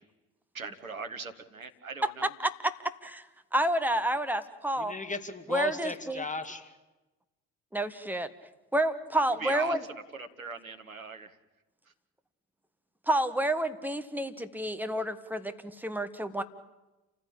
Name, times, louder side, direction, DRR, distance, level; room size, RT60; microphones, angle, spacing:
voice 1, 0.5-2.3 9.1-11.4, right 4 dB, 85° right, 7 dB, 1.1 m, -40 dB
voice 2, 3.5-4.9 5.5-6.2 7.7-8.3 8.7-9.8 13.1-16.4, right 1 dB, 5° right, 8 dB, 1.7 m, -29 dB
voice 3, 4.8-6.8, left 3 dB, 20° left, 9 dB, 2.3 m, -36 dB
29.0 x 15.0 x 8.9 m, 1.1 s
figure-of-eight pair, 50°, 41 cm